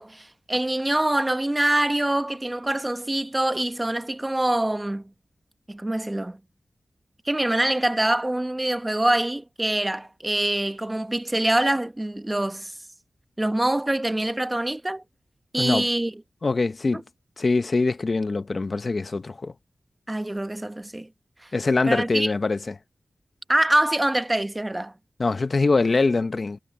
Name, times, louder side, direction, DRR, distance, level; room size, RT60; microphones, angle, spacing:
voice 1, 0.0-5.1 5.7-6.4 7.2-12.7 13.4-15.0 15.5-16.1 16.9-17.0 20.1-21.1 21.4-21.5 21.9-22.3 23.5-24.9, right 1 dB, 15° right, 1.0 m, -24 dB
voice 2, 16.4-17.0 17.4-19.5 21.5-22.7 25.2-26.6, left 3 dB, 45° left, 0.8 m, -23 dB
wide cardioid pair, 90°, 0 cm